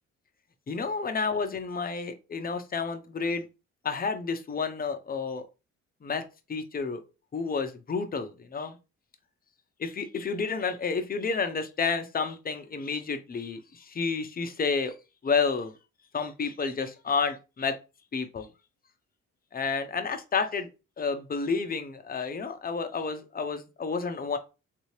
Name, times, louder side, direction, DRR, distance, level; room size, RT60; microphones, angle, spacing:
voice 1, 0.7-3.5 3.8-5.4 6.0-6.2 6.5-7.0 7.3-8.8 9.8-14.9 15.2-15.7 16.1-17.8 18.1-18.5 19.5-20.7 21.0-24.4, left 5 dB, 30° left, 0.7 m, -30 dB
3.3 x 2.8 x 3.2 m
cardioid pair, 90°, 30 cm